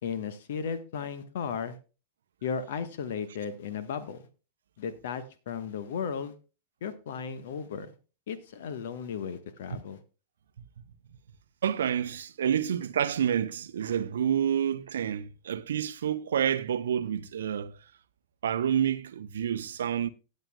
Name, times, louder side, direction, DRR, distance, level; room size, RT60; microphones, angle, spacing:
voice 1, 0.0-1.8 2.4-4.2 4.8-6.3 6.8-7.9 8.3-10.0, left 6 dB, 60° left, 1.1 m, -35 dB
voice 2, 11.6-17.7 18.4-20.1, right 9 dB, 65° right, 0.7 m, -28 dB
17.5 x 7.7 x 2.2 m
figure-of-eight pair, 90°, 0 cm